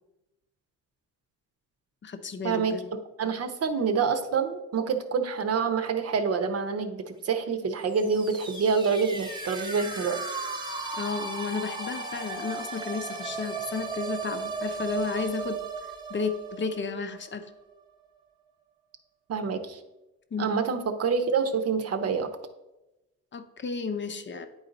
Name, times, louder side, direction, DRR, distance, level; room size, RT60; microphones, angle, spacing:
voice 1, 2.0-2.9 11.0-15.6 16.1-17.5 20.3-20.7 23.3-24.5, left 5 dB, 40° left, 8 dB, 0.7 m, -33 dB
voice 2, 3.2-10.2 19.3-19.8 20.4-22.3, right 5 dB, 55° right, 7 dB, 0.8 m, -27 dB
sound 1, 7.9-17.6, right 4 dB, 15° right, 1.0 m, -36 dB
9.5 x 4.0 x 4.0 m, 0.98 s
cardioid pair, 90°, 30 cm